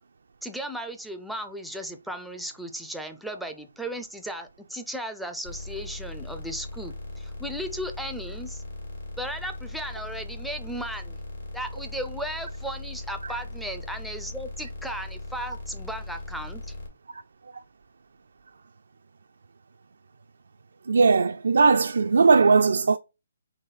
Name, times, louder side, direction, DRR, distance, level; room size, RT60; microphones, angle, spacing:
voice 1, 0.4-8.6 9.2-11.2 11.5-16.7, right 1 dB, ahead, 0.4 m, -36 dB
sound 1, 5.4-16.9, left 2 dB, 60° left, 2.0 m, -39 dB
voice 2, 20.9-23.0, right 4 dB, 75° right, 0.3 m, -19 dB
3.9 x 3.0 x 4.1 m
hypercardioid pair, 155°, 0 cm